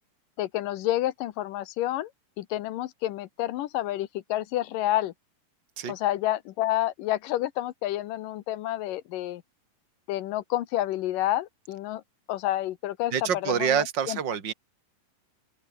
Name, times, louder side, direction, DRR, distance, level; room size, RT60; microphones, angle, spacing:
voice 1, 0.4-2.1 2.4-5.1 5.9-9.4 10.1-12.0 12.3-14.2, left 14 dB, 75° left, 2.5 m, -29 dB
voice 2, 13.1-14.5, right 8 dB, 30° right, 3.0 m, -26 dB
open air
omnidirectional pair, 4.2 m